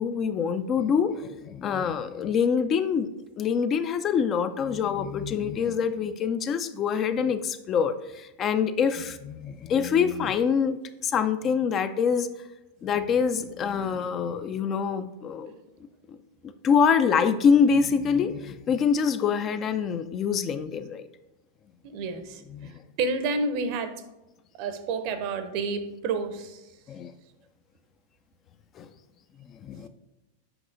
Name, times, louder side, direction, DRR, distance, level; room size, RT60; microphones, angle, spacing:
voice 1, 0.0-3.1 3.4-10.8 11.0-12.3 12.8-15.5 16.1-16.2 16.6-21.0 22.5-22.7 26.9-27.1 28.8-28.9 29.6-29.9, left 6 dB, 30° left, 11 dB, 0.3 m, -25 dB
voice 2, 21.8-23.9 24.5-26.7, right 4 dB, 45° right, 9 dB, 0.6 m, -30 dB
7.8 x 5.5 x 2.5 m, 1.0 s
figure-of-eight pair, 90°, 0 cm